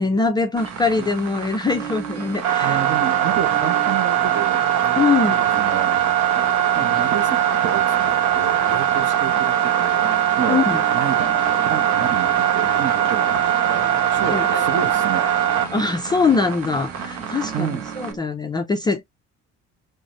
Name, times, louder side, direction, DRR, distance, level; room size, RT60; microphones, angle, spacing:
voice 1, 0.0-2.8 5.0-5.4 10.5-10.8 14.3-14.7 15.7-19.1, left 4 dB, 15° left, 0.3 m, -22 dB
sound 1, 0.5-18.2, right 6 dB, 20° right, 1.3 m, -39 dB
sound 2, 0.6-18.1, right 10 dB, 75° right, 0.9 m, -21 dB
voice 2, 2.6-4.7 5.3-6.0 6.7-10.0 10.4-10.6 10.9-13.8 14.1-15.3 17.5-17.9, right 8 dB, 40° right, 0.7 m, -30 dB
3.8 x 2.0 x 2.8 m
cardioid pair, 175°, 29 cm